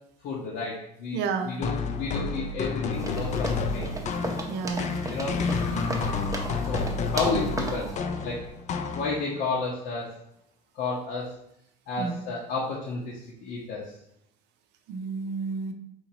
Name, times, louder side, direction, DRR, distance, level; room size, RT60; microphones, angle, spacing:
voice 1, 0.2-1.2 1.4-3.9 5.1-5.4 5.6-6.2 6.7-7.9 8.2-8.4 8.9-10.1 10.7-11.3 11.9-13.9, left 3 dB, 60° left, -5 dB, 0.9 m, -32 dB
voice 2, 1.1-1.6 4.5-5.0 12.0-12.2 14.9-15.7, right 5 dB, 60° right, 7 dB, 0.6 m, -31 dB
sound 1, 1.6-9.4, left 4 dB, 35° left, 0.4 m, -30 dB
sound 2, 3.0-7.9, right 2 dB, 15° right, 0.7 m, -35 dB
sound 3, 5.3-8.5, left 2 dB, 15° left, 0.8 m, -41 dB
4.4 x 2.8 x 2.8 m, 0.76 s
supercardioid pair, 80°, 20 cm